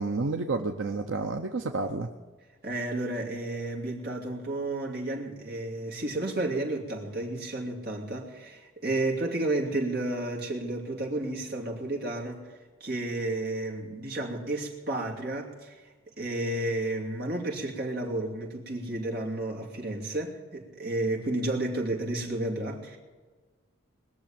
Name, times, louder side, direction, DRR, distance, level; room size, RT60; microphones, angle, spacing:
voice 1, 0.0-2.1, right 3 dB, 75° right, 0.8 m, -30 dB
voice 2, 2.6-12.4 12.8-23.0, right 2 dB, 50° right, 2.7 m, -32 dB
21.0 x 7.0 x 8.8 m
head